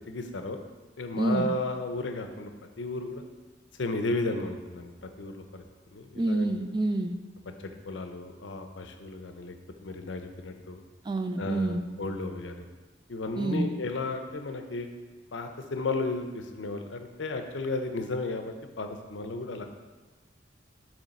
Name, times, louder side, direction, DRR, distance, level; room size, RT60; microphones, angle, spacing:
voice 1, 0.1-0.6 1.0-2.5 2.8-3.3 3.8-5.6 5.9-6.5 7.9-9.5 9.8-10.8 11.4-12.6 13.1-14.9 15.3-19.6, left 2 dB, 90° left, 6 dB, 0.6 m, -34 dB
voice 2, 1.2-1.5 6.2-7.1 11.0-11.9 13.4-13.7, right 2 dB, 25° right, 7 dB, 0.4 m, -28 dB
7.1 x 3.2 x 5.3 m, 1.3 s
head